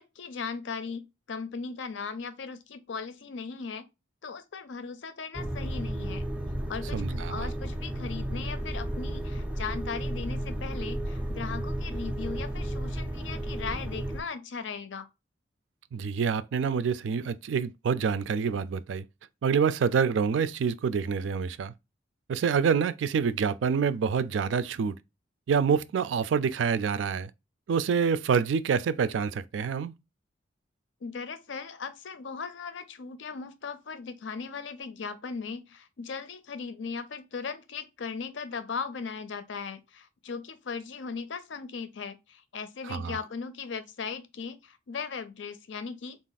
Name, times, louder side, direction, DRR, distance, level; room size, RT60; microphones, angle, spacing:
voice 1, 0.0-3.9 4.2-6.2 6.7-15.1 31.0-46.2, left 5 dB, 80° left, 0.6 m, -38 dB
sound 1, 5.3-14.2, right 1 dB, 5° right, 0.5 m, -33 dB
voice 2, 6.9-7.5 15.9-19.0 19.4-21.7 22.3-25.0 25.5-27.3 27.7-29.9 42.9-43.2, right 6 dB, 75° right, 0.3 m, -27 dB
4.0 x 2.5 x 3.9 m
head